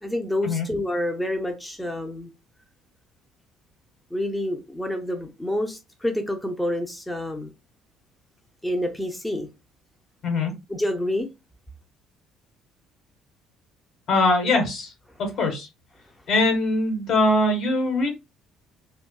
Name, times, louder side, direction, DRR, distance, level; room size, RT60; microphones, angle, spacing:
voice 1, 0.0-2.3 4.1-7.5 8.6-9.5 10.7-11.3, left 1 dB, 10° left, 0.6 m, -28 dB
voice 2, 14.1-14.9 15.2-15.7 16.3-18.1, left 2 dB, 55° left, 1.2 m, -22 dB
2.6 x 2.2 x 2.2 m
figure-of-eight pair, 55°, 0 cm